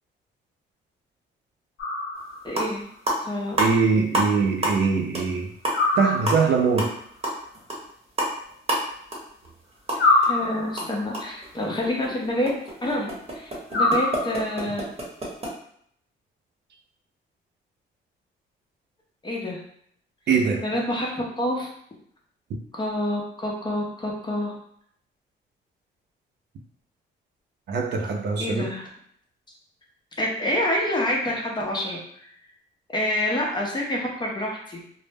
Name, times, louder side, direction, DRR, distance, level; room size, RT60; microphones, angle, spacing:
sound 1, 1.8-2.6 5.7-6.7 10.0-11.0 13.7-14.7, left 2 dB, 75° left, 0.8 m, -24 dB
sound 2, 2.1-2.2 2.5-2.8 3.0-4.3 4.6-4.9 5.1-5.3 5.6-10.3 10.6-15.5, right 1 dB, 30° right, 0.9 m, -29 dB
voice 1, 2.4-2.9 3.2-3.6 10.0-12.5 12.8-14.9 19.2-19.6 20.6-21.7 22.7-24.5 28.4-28.9 30.2-32.3 32.9-34.8, left 1 dB, 20° left, -2 dB, 0.7 m, -27 dB
voice 2, 3.6-5.5 6.0-6.9 20.3-20.6 27.7-28.7, right 5 dB, 60° right, 2 dB, 0.5 m, -22 dB
2.0 x 2.0 x 3.3 m, 0.67 s
cardioid pair, 90°, 20 cm